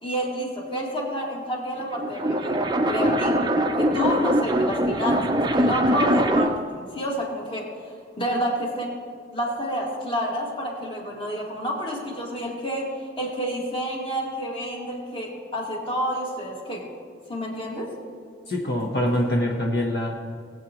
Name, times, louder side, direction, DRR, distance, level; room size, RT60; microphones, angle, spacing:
voice 1, 0.0-7.7 8.2-9.0 9.3-16.9 17.3-17.9, equal, 30° left, -2 dB, 2.0 m, -29 dB
sound 1, 1.8-6.7, right 1 dB, 25° right, 0.5 m, -22 dB
voice 2, 18.5-20.1, left 1 dB, 60° left, -1 dB, 1.1 m, -24 dB
20.0 x 8.2 x 3.0 m, 2.2 s
head